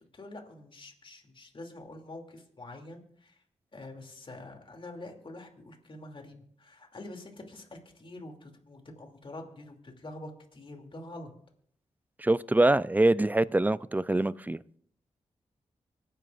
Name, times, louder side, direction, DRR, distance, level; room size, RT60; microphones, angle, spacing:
voice 1, 0.1-3.4 3.7-11.3, left 2 dB, 45° left, 2.6 m, -46 dB
voice 2, 12.2-14.8, right 2 dB, 15° right, 0.4 m, -24 dB
25.0 x 10.0 x 2.5 m
cardioid pair, 55°, 12 cm